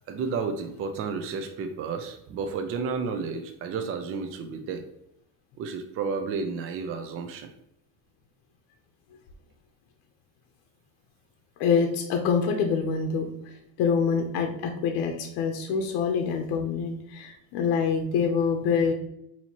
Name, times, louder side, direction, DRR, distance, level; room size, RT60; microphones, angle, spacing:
voice 1, 0.1-4.9 5.6-7.5, right 5 dB, 35° right, 6 dB, 0.4 m, -32 dB
voice 2, 11.6-18.9, left 6 dB, 75° left, 4 dB, 0.7 m, -26 dB
4.3 x 2.8 x 2.9 m, 0.77 s
cardioid pair, 130°, 40 cm